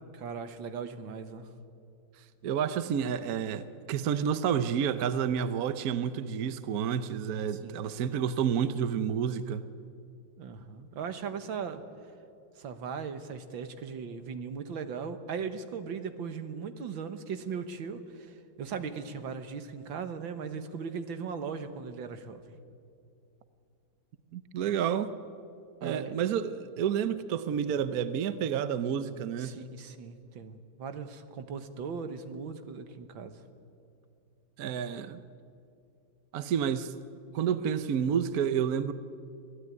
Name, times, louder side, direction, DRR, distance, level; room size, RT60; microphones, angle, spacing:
voice 1, 0.1-1.5 7.6-7.8 10.4-11.8 12.6-22.4 25.8-26.1 29.4-33.4, right 6 dB, 80° right, 9 dB, 2.1 m, -38 dB
voice 2, 2.4-9.6 24.3-25.1 25.8-29.6 34.6-35.2 36.3-36.9 37.3-38.9, right 8 dB, 60° right, 12 dB, 1.2 m, -30 dB
25.5 x 16.5 x 9.6 m, 2.5 s
omnidirectional pair, 2.1 m